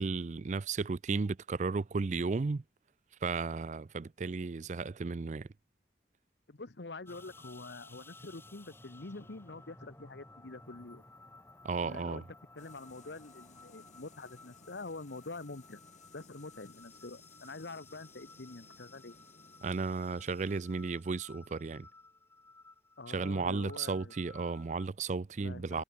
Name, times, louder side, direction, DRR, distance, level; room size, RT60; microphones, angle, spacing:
voice 1, 0.0-2.6 3.2-5.5 11.6-12.2 19.6-21.9 23.1-25.8, right 4 dB, 40° right, 0.4 m, -34 dB
voice 2, 6.5-11.0 11.8-12.2 12.5-15.8 16.1-19.1 23.0-24.1 25.4-25.8, left 3 dB, 75° left, 1.1 m, -46 dB
sound 1, 7.1-24.9, left 2 dB, 15° left, 4.4 m, -56 dB
sound 2, 12.6-22.2, left 4 dB, 40° left, 5.6 m, -60 dB
head